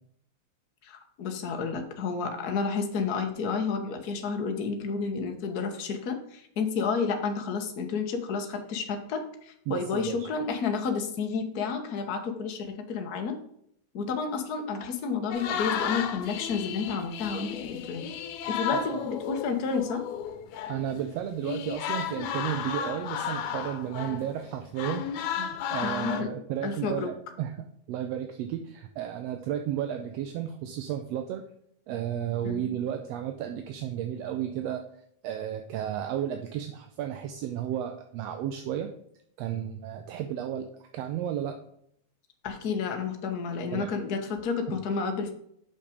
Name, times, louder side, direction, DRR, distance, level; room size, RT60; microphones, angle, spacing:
voice 1, 0.8-13.4 13.9-18.1 18.5-20.0 25.8-27.1 32.4-32.7 42.4-45.3, left 5 dB, 65° left, 4 dB, 0.9 m, -31 dB
voice 2, 9.7-10.3 18.7-19.0 20.7-25.0 25.4-31.4 31.9-34.8 35.2-38.9 39.4-40.7 40.9-41.6 43.7-43.9 44.7-44.8, right 10 dB, 75° right, 6 dB, 1.6 m, -33 dB
sound 1, 15.3-20.9 21.4-24.5 24.8-26.2, left 8 dB, 85° left, 2.2 m, -33 dB
6.7 x 5.6 x 5.0 m, 0.70 s
omnidirectional pair, 3.4 m